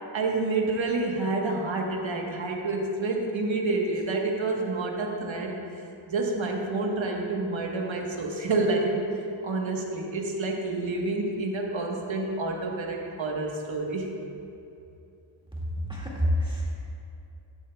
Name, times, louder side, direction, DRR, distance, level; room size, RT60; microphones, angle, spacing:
voice 1, 0.1-5.6 6.1-9.2 9.4-14.1, right 3 dB, 70° right, 0 dB, 1.3 m, -28 dB
voice 2, 15.8-16.8, equal, 10° right, -5 dB, 2.0 m, -27 dB
12.0 x 11.0 x 2.3 m, 2.7 s
wide cardioid pair, 150°, 47 cm